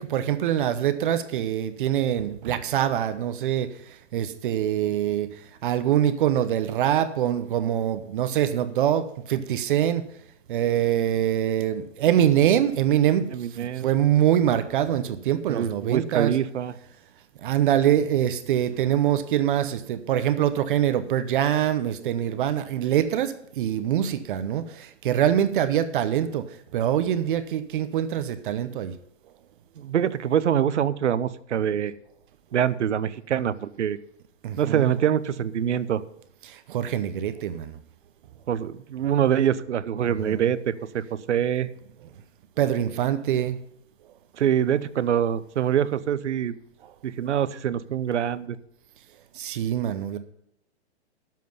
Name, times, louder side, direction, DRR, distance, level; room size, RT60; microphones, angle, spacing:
voice 1, 0.0-3.7 4.1-5.3 5.6-10.1 10.5-13.3 13.5-16.3 17.4-26.4 26.7-28.9 34.4-34.8 36.4-37.8 40.2-40.4 42.6-43.6 49.3-50.2, right 11 dB, 50° right, 11 dB, 0.8 m, -24 dB
voice 2, 13.3-13.9 15.5-16.7 29.8-31.9 32.5-34.0 34.6-36.0 38.5-41.7 44.4-46.6 47.0-48.6, right 9 dB, 85° right, 16 dB, 0.8 m, -25 dB
11.0 x 7.5 x 5.4 m, 0.73 s
hypercardioid pair, 145°, 34 cm